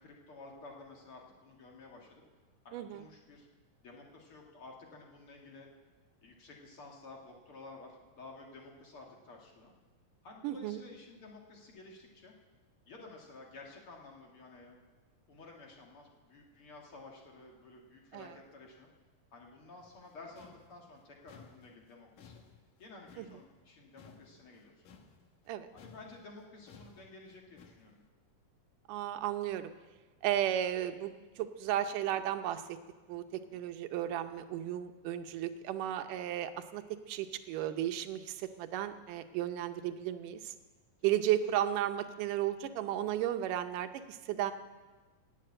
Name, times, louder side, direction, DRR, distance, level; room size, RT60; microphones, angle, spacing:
voice 1, 0.0-2.2 2.6-3.5 3.8-5.7 6.2-9.7 10.2-12.3 12.9-14.8 15.3-18.9 19.3-22.4 22.8-24.9 25.7-28.0 33.3-33.6 41.0-41.1, left 3 dB, 50° left, 0 dB, 2.4 m, -53 dB
voice 2, 2.7-3.1 10.4-10.8 18.1-18.3 23.2-23.3 25.5-25.7 28.9-29.7 30.2-32.8 33.1-33.3 33.5-40.5 41.0-44.5, right 11 dB, 85° right, 9 dB, 2.3 m, -34 dB
sound 1, 19.8-25.5 25.8-28.0, left 6 dB, 80° left, 2.7 m, -58 dB
18.0 x 7.2 x 8.7 m, 1.3 s
omnidirectional pair, 3.6 m